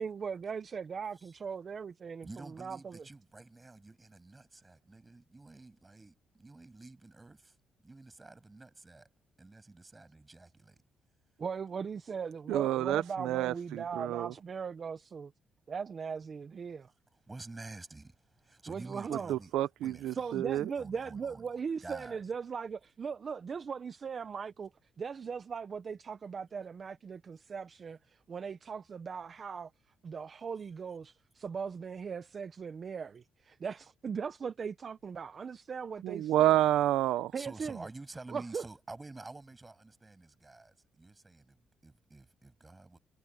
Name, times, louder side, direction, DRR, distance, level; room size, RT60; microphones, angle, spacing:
voice 1, 0.0-3.0 11.4-15.3 15.7-16.9 18.7-19.4 20.1-24.7 25.0-29.7 30.0-36.6 37.3-37.9 38.3-38.6, right 6 dB, 35° right, 0.7 m, -39 dB
voice 2, 2.2-7.5 7.8-9.1 9.4-10.8 17.3-19.5 19.8-20.2 20.8-21.5 21.8-22.2 37.3-43.0, right 2 dB, 15° right, 6.8 m, -49 dB
voice 3, 12.5-14.3 19.3-20.7 36.0-37.3, right 13 dB, 90° right, 0.6 m, -29 dB
cardioid pair, 150°, 0 cm